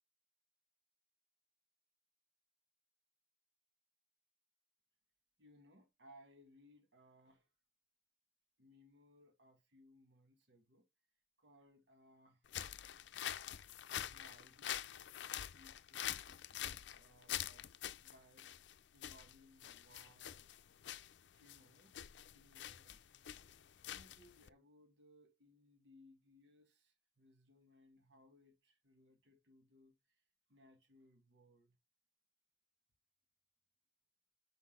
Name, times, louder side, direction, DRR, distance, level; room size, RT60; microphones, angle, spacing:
voice 1, 5.4-7.5 8.6-10.9 11.4-12.5 14.0-18.5 18.9-20.5 21.3-23.0 23.8-30.2 30.5-31.8, equal, 85° right, 1.6 m, -66 dB
sound 1, 12.5-24.5, left 11 dB, 85° left, 0.5 m, -46 dB
5.9 x 5.3 x 6.4 m
head